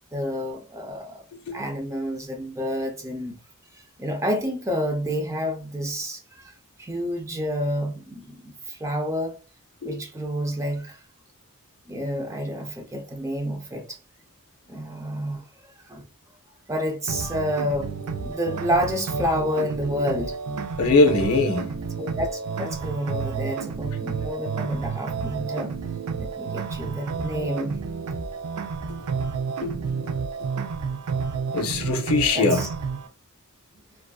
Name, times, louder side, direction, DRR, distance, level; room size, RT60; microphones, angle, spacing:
voice 1, 0.1-1.2 1.5-3.4 3.7-6.5 6.8-9.3 9.8-11.0 11.9-14.0 14.7-15.4 15.9-16.0 16.7-17.9 18.2-20.4 22.0-27.8 32.3-32.7, equal, 15° right, 0.4 m, -29 dB
sound 1, 17.1-33.1, right 5 dB, 85° right, 0.4 m, -30 dB
voice 2, 20.8-21.7 29.6-29.7 31.5-32.6, left 3 dB, 70° left, 0.5 m, -21 dB
2.5 x 2.3 x 2.3 m
head